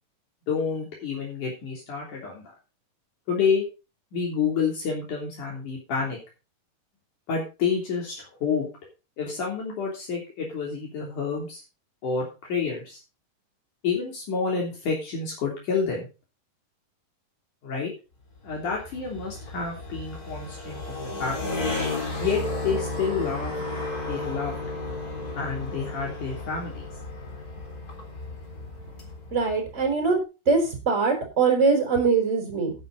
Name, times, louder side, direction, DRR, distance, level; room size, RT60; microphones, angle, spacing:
voice 1, 0.5-2.4 3.3-3.6 4.1-6.2 7.3-8.7 9.2-11.6 12.0-13.0 13.8-16.1 17.6-17.9 18.4-21.7 22.2-23.5 24.1-24.6 25.3-26.8, left 5 dB, 65° left, -2 dB, 4.7 m, -29 dB
sound 1, 18.4-30.0, left 2 dB, 25° left, 3.8 m, -33 dB
voice 2, 29.3-30.2 30.5-32.7, right 4 dB, 20° right, 2 dB, 4.6 m, -22 dB
12.0 x 10.0 x 4.0 m, 0.30 s
omnidirectional pair, 3.9 m